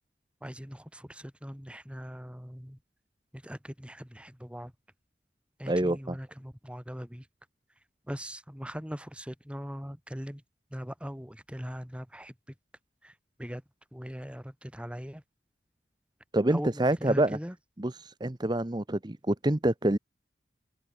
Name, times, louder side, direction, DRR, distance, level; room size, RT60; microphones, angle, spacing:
voice 1, 0.4-2.8 3.3-4.7 5.6-7.2 8.1-10.4 10.7-12.3 13.0-13.1 13.4-13.6 13.9-15.2 16.5-17.5, equal, 5° right, 6.6 m, -40 dB
voice 2, 5.7-6.2 16.3-17.4 17.8-20.0, right 1 dB, 25° right, 0.9 m, -27 dB
open air
head